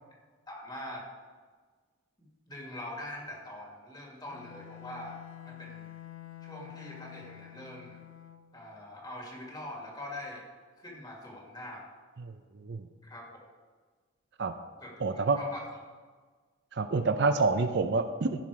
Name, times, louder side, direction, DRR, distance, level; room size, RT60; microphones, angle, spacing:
voice 1, 0.5-1.1 2.5-5.9 6.4-8.0 8.5-10.4 10.8-11.8 13.0-13.5 14.8-14.9 15.4-15.6, left 1 dB, 20° left, -1 dB, 1.8 m, -43 dB
Bowed string instrument, 4.3-8.6, left 12 dB, 65° left, 0.5 m, -48 dB
voice 2, 15.0-15.4 16.7-18.4, right 3 dB, 55° right, 8 dB, 0.5 m, -27 dB
14.5 x 5.7 x 4.8 m, 1.5 s
head